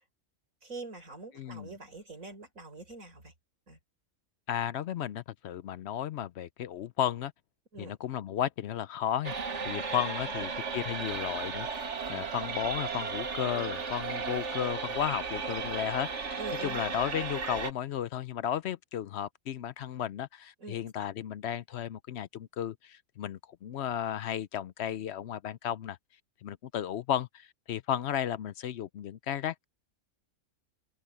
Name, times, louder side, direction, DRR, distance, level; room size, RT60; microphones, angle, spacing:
voice 1, 0.6-3.3 3.7-3.8 7.7-8.0 10.3-10.6 12.1-12.3 16.4-16.8 20.6-20.8, right 3 dB, 85° right, 4.7 m, -44 dB
voice 2, 1.3-1.7 4.5-7.3 7.8-9.4 9.6-26.0 26.4-29.6, left 10 dB, 65° left, 0.8 m, -34 dB
sound 1, 9.2-17.7, right 5 dB, 60° right, 1.7 m, -35 dB
omnidirectional pair, 1.4 m